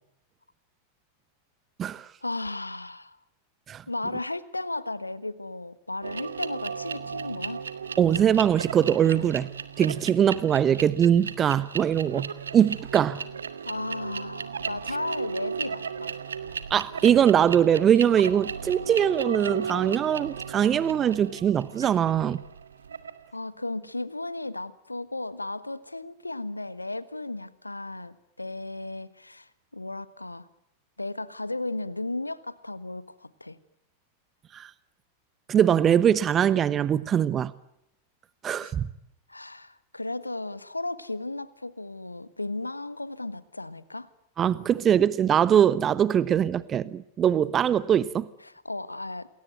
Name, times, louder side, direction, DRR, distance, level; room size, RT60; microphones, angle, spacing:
voice 1, 2.2-3.2 3.9-7.6 13.6-16.2 23.3-30.5 31.0-33.6 38.6-38.7 39.3-44.1 48.4-49.3, left 2 dB, 85° left, 1.4 m, -35 dB
sound 1, 6.0-23.2, right 6 dB, 70° right, 1.6 m, -35 dB
voice 2, 8.0-9.5 9.8-13.2 16.7-22.4 34.5-34.7 35.5-37.5 38.4-38.9 44.4-48.3, right 9 dB, 25° right, 1.0 m, -22 dB
28.5 x 21.5 x 9.5 m
figure-of-eight pair, 90°, 0 cm